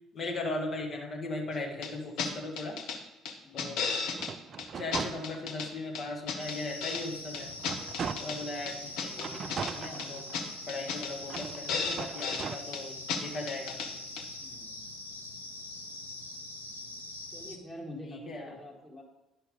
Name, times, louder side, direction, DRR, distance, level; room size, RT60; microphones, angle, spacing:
voice 1, 0.1-2.8 3.5-3.8 4.7-7.5 8.2-9.4 9.7-10.3 10.7-13.8 18.0-18.6, left 2 dB, 40° left, 0 dB, 2.0 m, -38 dB
sound 1, 1.8-1.9 2.2-2.3 2.6-3.0 3.3-4.3 4.6-4.7 4.9-5.7 5.9-7.0 7.3-8.4 8.7-9.7 10.0-10.1 10.3-10.4 10.7-11.1 11.4-11.5 11.7-12.5 12.7-12.8 13.1-13.2 13.5-13.9 14.2-14.3, left 5 dB, 60° left, 1.1 m, -34 dB
voice 2, 3.4-4.0 8.0-8.5 14.4-14.8 17.3-19.0, left 1 dB, 10° left, -5 dB, 1.8 m, -47 dB
sound 2, 4.1-5.8 6.3-6.4 6.8-8.6 9.2-10.6 11.2-12.6, right 6 dB, 40° right, 0.4 m, -40 dB
sound 3, 6.4-17.6, left 2 dB, 90° left, 0.6 m, -43 dB
11.0 x 5.7 x 5.3 m, 0.95 s
figure-of-eight pair, 50°, 0 cm